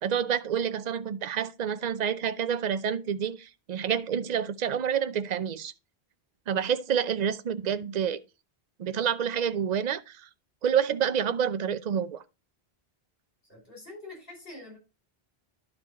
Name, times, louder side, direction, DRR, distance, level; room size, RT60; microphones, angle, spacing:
voice 1, 0.0-5.7 6.5-8.2 8.8-10.2 10.6-12.2, right 8 dB, 50° right, 0.6 m, -28 dB
voice 2, 13.5-14.8, left 2 dB, 60° left, 5.7 m, -45 dB
11.0 x 4.8 x 4.1 m
omnidirectional pair, 1.0 m